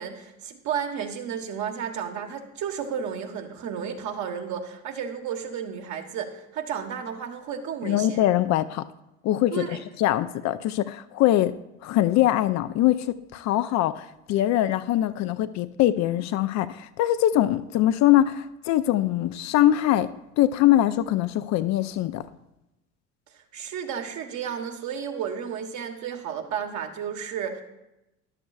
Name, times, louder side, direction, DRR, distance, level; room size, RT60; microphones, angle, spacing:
voice 1, 0.0-8.2 9.5-9.8 23.5-27.6, right 7 dB, 55° right, 4 dB, 1.4 m, -32 dB
voice 2, 7.8-8.8 9.2-11.5 11.8-20.1 20.4-22.2, left 13 dB, 50° left, 12 dB, 0.5 m, -22 dB
13.5 x 10.5 x 2.4 m, 0.93 s
hypercardioid pair, 75°, 34 cm